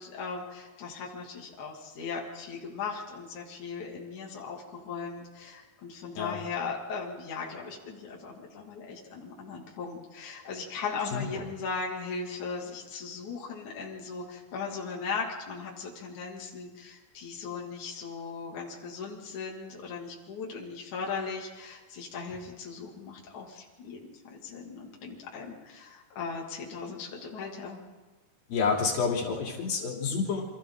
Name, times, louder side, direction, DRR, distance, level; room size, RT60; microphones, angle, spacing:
voice 1, 0.0-27.8, left 5 dB, 60° left, -2 dB, 3.9 m, -38 dB
voice 2, 11.1-11.5 28.5-30.4, left 5 dB, 85° left, 0 dB, 4.8 m, -29 dB
28.5 x 25.5 x 3.9 m, 1.3 s
omnidirectional pair, 4.1 m